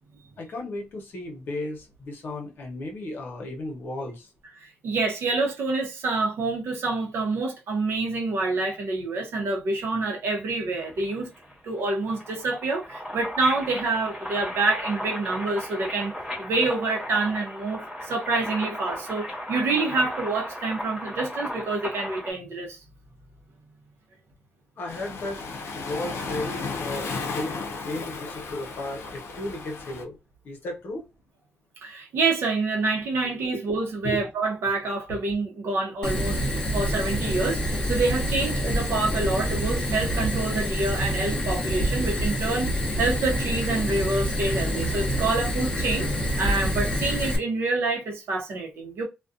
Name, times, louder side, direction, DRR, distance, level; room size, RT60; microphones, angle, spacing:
voice 1, 0.4-4.3 24.8-25.4 25.7-30.2 30.4-31.0 33.2-33.4 34.0-34.2, left 2 dB, 55° left, 0.9 m, -34 dB
voice 2, 4.6-11.3 11.6-22.8 31.8-36.4 36.7-42.7 43.0-46.1 46.4-49.1, right 3 dB, 70° right, 0.7 m, -27 dB
sound 1, 10.8-22.3, left 1 dB, ahead, 1.1 m, -36 dB
Waves surf, 24.9-30.0, left 4 dB, 85° left, 0.5 m, -34 dB
Fire, 36.0-47.4, equal, 20° left, 0.7 m, -27 dB
2.4 x 2.2 x 2.4 m
wide cardioid pair, 175°, 4 cm